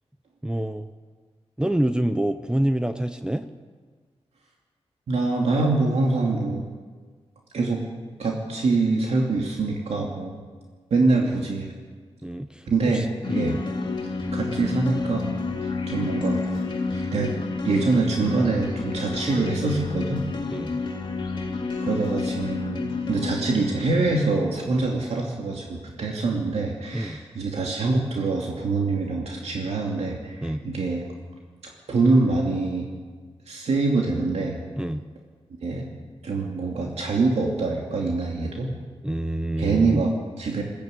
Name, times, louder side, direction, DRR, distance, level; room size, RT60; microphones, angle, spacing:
voice 1, 0.4-0.9 1.6-3.5 11.2-11.3 12.2-12.7 12.9-13.6 20.5-20.8 26.9-27.2 30.4-30.6 34.8-35.1 39.0-40.0, right 1 dB, 10° right, 9 dB, 0.7 m, -27 dB
voice 2, 5.1-6.6 7.5-7.8 8.2-10.4 10.9-11.7 12.7-13.6 14.3-15.3 15.6-17.3 17.6-20.3 21.8-31.0 31.6-32.9 33.5-34.6 35.6-35.9 36.2-38.7 39.6-40.6, right 3 dB, 75° right, -1 dB, 2.6 m, -25 dB
sound 1, 13.2-24.4, left 3 dB, 45° left, 2.6 m, -29 dB
21.0 x 16.0 x 8.4 m, 1.5 s
wide cardioid pair, 135°, 11 cm